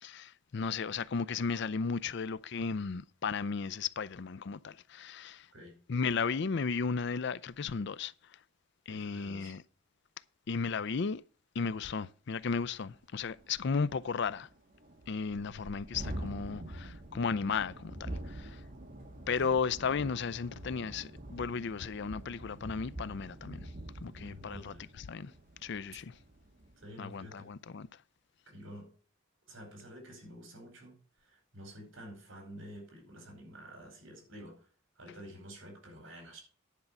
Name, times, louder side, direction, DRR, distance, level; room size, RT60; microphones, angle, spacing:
voice 1, 0.0-5.5 5.9-8.1 8.9-9.6 10.5-11.2 11.5-14.5 15.1-18.6 19.3-23.7 24.0-25.3 25.6-26.2 27.0-27.9, left 5 dB, 60° left, 0.5 m, -35 dB
voice 2, 8.9-9.5 15.5-15.8 19.3-19.5 24.2-24.9 26.8-27.5 28.5-28.9 29.4-34.7 35.0-36.4, equal, 85° right, 4.5 m, -50 dB
Thunderstorm, 12.5-12.6 12.9-13.0 13.3-26.9, right 1 dB, 45° right, 1.6 m, -46 dB
10.5 x 5.3 x 7.1 m
head